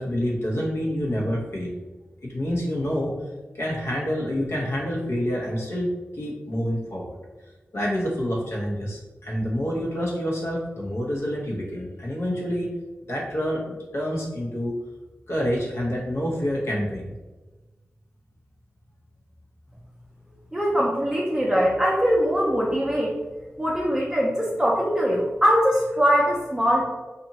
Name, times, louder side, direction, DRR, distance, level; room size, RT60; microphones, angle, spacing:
voice 1, 0.0-1.8 2.2-3.2 3.6-5.9 6.2-7.1 7.7-12.7 13.1-14.7 15.3-17.1, equal, 65° left, -3 dB, 0.9 m, -27 dB
voice 2, 20.5-23.1 23.6-26.8, equal, 10° right, -5 dB, 0.6 m, -22 dB
2.8 x 2.4 x 2.7 m, 1.2 s
cardioid pair, 40°, 5 cm